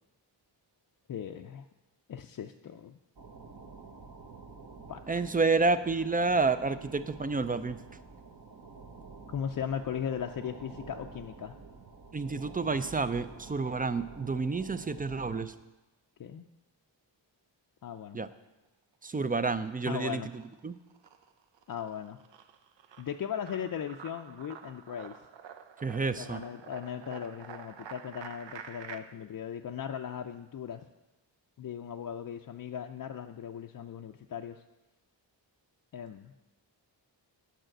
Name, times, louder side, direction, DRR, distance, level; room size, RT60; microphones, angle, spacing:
voice 1, 1.1-1.7 2.1-3.0 4.9-5.0 9.3-11.6 16.2-16.4 17.8-18.2 19.1-19.2 19.8-20.3 21.7-22.2 23.0-25.2 26.0-30.8 31.6-34.6 35.9-36.3, left 8 dB, 45° left, 4 dB, 0.5 m, -38 dB
sound 1, 3.2-15.4, right 4 dB, 50° right, 1.2 m, -49 dB
voice 2, 5.1-7.8 12.1-15.5 18.1-18.3 19.0-20.3 20.6-20.7 25.8-26.4, right 3 dB, 20° right, 13 dB, 0.3 m, -29 dB
sound 2, 19.0-19.9 20.2-29.0, right 7 dB, 70° right, 0.7 m, -48 dB
9.0 x 5.0 x 7.8 m, 1.0 s
wide cardioid pair, 95°, 45 cm